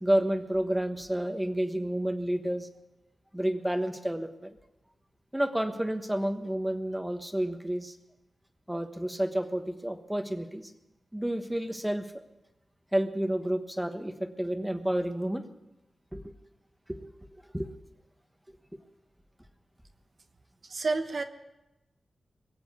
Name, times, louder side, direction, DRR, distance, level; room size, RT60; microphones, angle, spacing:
voice 1, 0.0-2.7 3.3-4.5 5.3-7.9 8.7-10.7 11.1-12.1 12.9-15.5 16.1-16.3 16.9-17.0 17.5-17.7, right 1 dB, 5° right, 8 dB, 1.2 m, -30 dB
voice 2, 20.6-21.2, right 3 dB, 55° right, 7 dB, 1.0 m, -29 dB
21.5 x 8.0 x 8.3 m, 0.99 s
wide cardioid pair, 95°, 0 cm